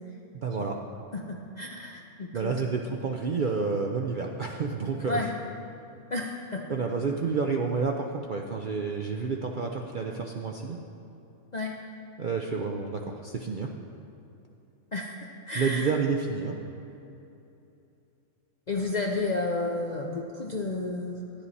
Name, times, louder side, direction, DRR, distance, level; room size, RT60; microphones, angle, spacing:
voice 1, 0.4-0.8 2.3-5.3 6.7-10.8 12.2-13.7 15.5-16.5, right 5 dB, 55° right, 1 dB, 0.5 m, -29 dB
voice 2, 1.1-2.6 5.1-5.3 6.1-6.6 11.5-11.8 14.9-15.9 18.7-21.2, left 2 dB, 50° left, 0 dB, 0.5 m, -31 dB
11.0 x 10.0 x 4.1 m, 2.8 s
omnidirectional pair, 1.5 m